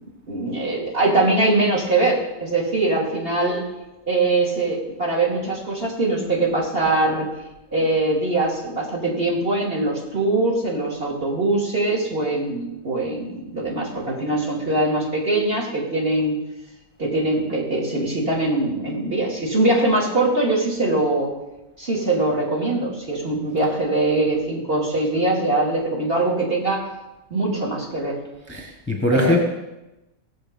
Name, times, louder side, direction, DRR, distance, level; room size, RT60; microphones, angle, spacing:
voice 1, 0.3-3.7 4.1-7.3 7.7-16.4 17.0-21.3 21.8-26.9 27.3-28.2 29.1-29.4, right 2 dB, 40° right, -4 dB, 3.0 m, -22 dB
voice 2, 28.5-29.4, left 1 dB, 10° left, 0 dB, 1.2 m, -21 dB
17.5 x 7.3 x 5.3 m, 0.99 s
omnidirectional pair, 1.6 m